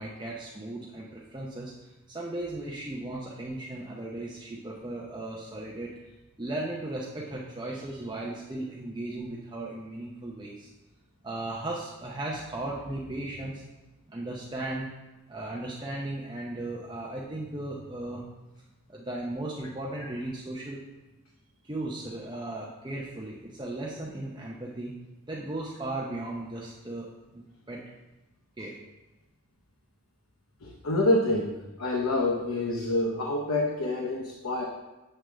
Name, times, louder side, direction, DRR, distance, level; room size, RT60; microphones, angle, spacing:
voice 1, 0.0-5.9 6.4-10.7 11.2-13.6 14.1-14.9 15.3-18.2 18.9-20.8 21.6-24.9 25.3-27.8 28.6-28.8, right 2 dB, 20° right, -3 dB, 0.6 m, -36 dB
voice 2, 30.6-34.6, left 2 dB, 85° left, 0 dB, 0.8 m, -27 dB
7.6 x 3.4 x 6.1 m, 1.0 s
head